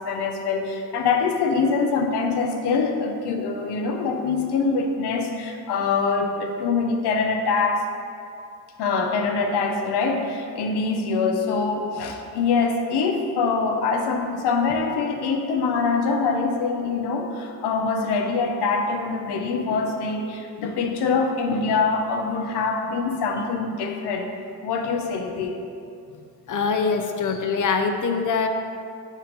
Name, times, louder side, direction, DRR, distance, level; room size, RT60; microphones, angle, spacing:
voice 1, 0.0-7.8 8.8-24.3 24.6-25.6, left 4 dB, 80° left, 4 dB, 0.7 m, -24 dB
voice 2, 26.5-28.5, left 5 dB, 50° left, 5 dB, 0.6 m, -23 dB
5.4 x 3.6 x 5.2 m, 2.5 s
cardioid pair, 65°, 40 cm